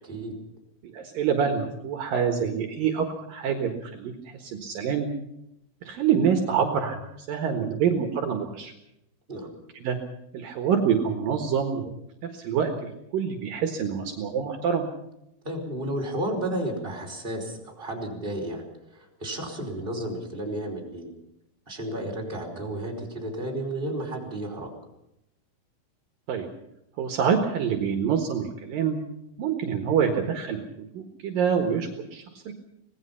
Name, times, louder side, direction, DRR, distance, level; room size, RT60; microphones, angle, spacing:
voice 1, 0.0-0.3 9.3-9.5 15.4-18.6 18.9-21.1 21.7-24.7, right 1 dB, 15° right, 1 dB, 5.0 m, -32 dB
voice 2, 0.9-5.1 5.9-8.7 9.7-10.0 10.3-11.9 12.2-14.9 26.3-26.5 27.0-29.0 29.4-32.5, right 7 dB, 65° right, 4 dB, 3.1 m, -26 dB
25.5 x 19.5 x 5.8 m, 0.81 s
omnidirectional pair, 4.6 m